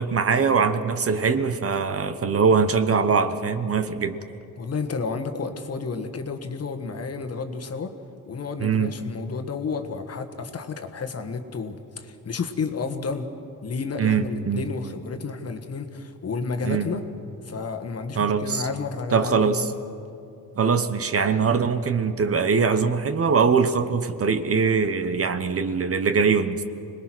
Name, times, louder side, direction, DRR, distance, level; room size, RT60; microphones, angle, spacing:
voice 1, 0.0-4.2 8.6-8.9 14.0-14.6 16.6-16.9 18.2-18.6 19.1-19.7 20.6-26.6, right 5 dB, 40° right, 10 dB, 1.0 m, -22 dB
voice 2, 4.6-7.9 8.3-13.3 13.6-17.0 17.4-19.7, left 4 dB, 45° left, 7 dB, 1.5 m, -31 dB
26.0 x 20.0 x 6.2 m, 2.6 s
cardioid pair, 110°, 34 cm